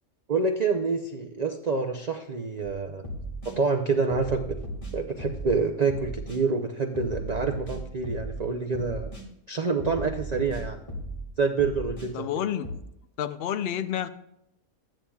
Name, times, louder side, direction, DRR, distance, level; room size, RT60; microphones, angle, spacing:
voice 1, 0.3-3.0 3.5-4.6 4.9-9.1 9.5-10.8 11.4-12.3, right 4 dB, 70° right, 0.4 m, -27 dB
sound 1, 2.6-2.7 3.0-3.5 4.1-5.6 5.9-6.4 6.9-8.4 8.7-9.2 9.8-11.3 11.6-12.1 12.6-12.8, right 1 dB, 25° left, 1.5 m, -36 dB
voice 2, 12.1-12.7 13.2-14.1, left 10 dB, 60° left, 0.6 m, -29 dB
12.5 x 9.0 x 2.3 m
omnidirectional pair, 1.5 m